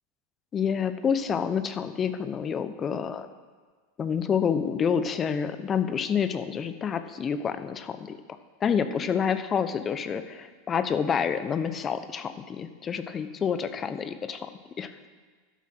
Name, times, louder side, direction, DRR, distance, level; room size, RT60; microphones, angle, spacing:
voice 1, 0.5-3.3 4.0-8.2 8.6-14.5 14.8-14.9, left 7 dB, 30° left, 11 dB, 0.9 m, -28 dB
12.5 x 7.7 x 6.0 m, 1.5 s
hypercardioid pair, 95°, 0 cm